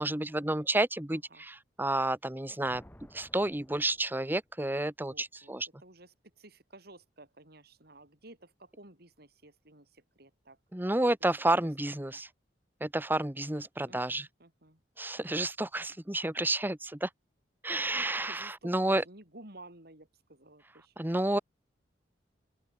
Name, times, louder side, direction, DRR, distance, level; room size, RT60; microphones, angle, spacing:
voice 1, 0.0-2.8 3.1-5.7 10.7-12.3 12.8-14.3 15.0-17.1 17.6-19.0 21.0-21.4, right 1 dB, 10° right, 1.1 m, -30 dB
voice 2, 1.1-1.4 5.0-5.5 5.8-10.6 11.2-11.3 11.8-12.2 13.8-14.8 18.2-21.0, right 2 dB, 60° right, 6.6 m, -54 dB
Thunder, 2.6-4.9, equal, 10° left, 4.4 m, -57 dB
open air
head